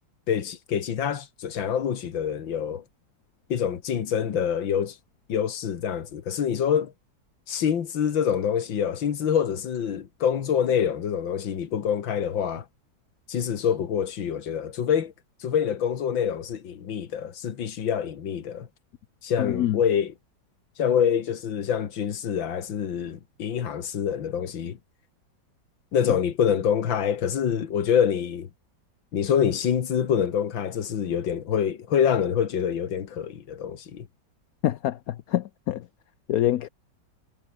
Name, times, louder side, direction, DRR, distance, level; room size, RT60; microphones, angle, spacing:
voice 1, 0.3-2.8 3.5-5.0 5.3-6.9 7.5-12.7 13.3-15.1 15.4-18.7 19.2-20.1 20.8-24.8 25.9-28.5 29.1-34.1, left 8 dB, 85° left, 2.4 m, -26 dB
voice 2, 19.4-19.8 34.6-35.8 36.3-36.7, left 13 dB, 65° left, 0.9 m, -25 dB
omnidirectional pair, 2.1 m